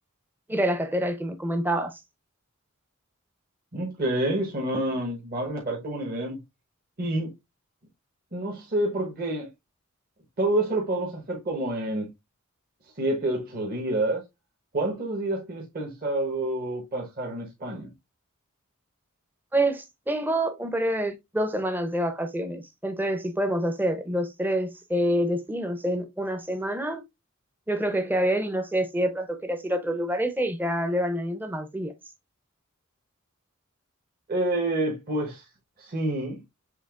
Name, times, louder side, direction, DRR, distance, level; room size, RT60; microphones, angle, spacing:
voice 1, 0.5-2.0 19.5-27.0 27.7-31.9, right 1 dB, 10° right, 0.6 m, -27 dB
voice 2, 3.7-6.4 7.0-7.3 8.3-9.5 10.4-12.1 13.0-14.2 14.7-17.9 34.3-35.4 35.8-36.4, right 1 dB, 45° right, 1.2 m, -28 dB
6.5 x 3.4 x 2.4 m
head